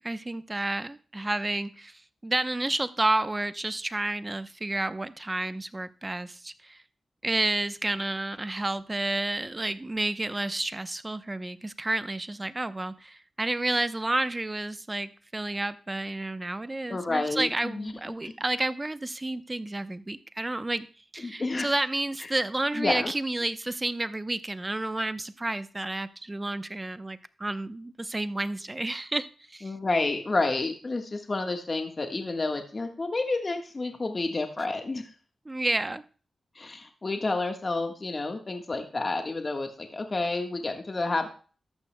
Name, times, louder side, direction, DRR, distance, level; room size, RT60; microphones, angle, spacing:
voice 1, 0.0-6.8 7.2-20.9 21.1-29.7 35.5-36.0, right 2 dB, 25° right, 12 dB, 0.7 m, -30 dB
voice 2, 16.9-18.3 21.2-21.7 22.2-22.3 22.7-23.1 29.6-35.1 36.5-41.3, left 3 dB, 40° left, 4 dB, 1.4 m, -30 dB
13.5 x 11.5 x 2.2 m, 0.38 s
cardioid pair, 50°, 0 cm